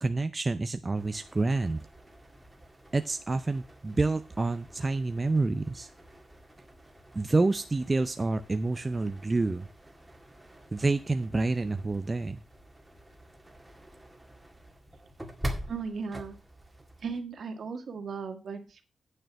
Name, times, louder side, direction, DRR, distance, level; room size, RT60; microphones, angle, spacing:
voice 1, 0.0-1.8 2.9-5.9 7.1-9.7 10.7-12.4, right 3 dB, 25° right, 8 dB, 0.5 m, -28 dB
sound 1, 0.9-17.2, equal, 10° right, 1.9 m, -45 dB
voice 2, 15.7-16.4 17.0-18.8, right 5 dB, 65° right, 7 dB, 1.7 m, -36 dB
9.3 x 6.6 x 5.8 m, 0.32 s
wide cardioid pair, 125°, 0 cm